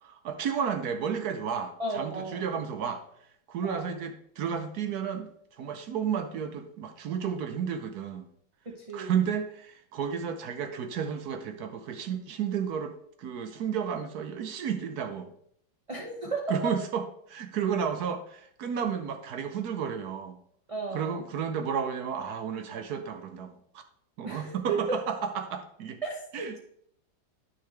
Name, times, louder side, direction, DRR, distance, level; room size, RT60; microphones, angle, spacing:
voice 1, 0.0-3.0 3.5-5.3 5.6-8.3 8.9-15.3 16.5-20.4 20.9-23.6 24.2-26.0 26.3-26.6, right 7 dB, 65° right, 8 dB, 1.2 m, -32 dB
voice 2, 1.8-2.4 3.6-4.0 8.6-9.2 15.9-16.7 20.7-21.2 24.2-25.0 26.0-26.6, right 3 dB, 30° right, 0 dB, 0.6 m, -34 dB
9.5 x 6.4 x 3.3 m, 0.67 s
omnidirectional pair, 1.9 m